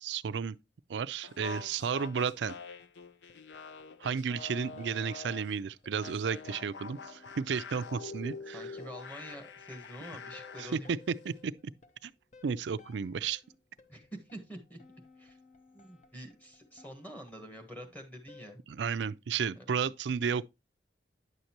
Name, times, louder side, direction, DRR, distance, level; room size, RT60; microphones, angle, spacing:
voice 1, 0.0-0.6 0.9-2.6 4.0-8.7 10.6-10.8 11.1-11.5 12.0-12.1 12.4-13.4 18.7-20.5, right 6 dB, 75° right, 0.4 m, -33 dB
sound 1, 1.2-5.6 6.0-10.8, left 4 dB, 75° left, 0.6 m, -45 dB
sound 2, 1.8-18.6, left 4 dB, 40° left, 0.9 m, -60 dB
voice 2, 8.5-10.9 13.9-14.8 15.2-15.4 15.7-18.6 19.6-19.7, equal, 10° left, 1.4 m, -47 dB
9.6 x 6.5 x 2.9 m
head